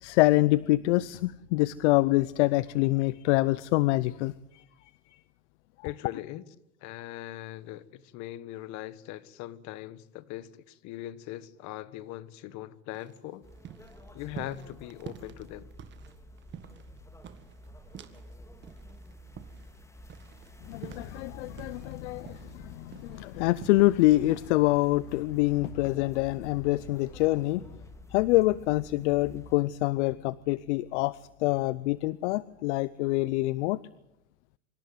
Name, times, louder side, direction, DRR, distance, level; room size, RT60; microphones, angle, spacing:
voice 1, 0.0-4.6 20.7-27.6 28.1-33.8, left 19 dB, 65° left, 0.7 m, -26 dB
voice 2, 5.8-6.4 6.8-13.5 14.1-15.7, left 14 dB, 45° left, 1.4 m, -40 dB
sound 1, 12.9-18.4 18.6-21.9 22.2-23.9 24.3-24.5, right 9 dB, 30° right, 1.7 m, -47 dB
sound 2, 13.4-29.6, equal, 5° left, 2.1 m, -50 dB
25.5 x 14.0 x 9.3 m
supercardioid pair, 130°, 38 cm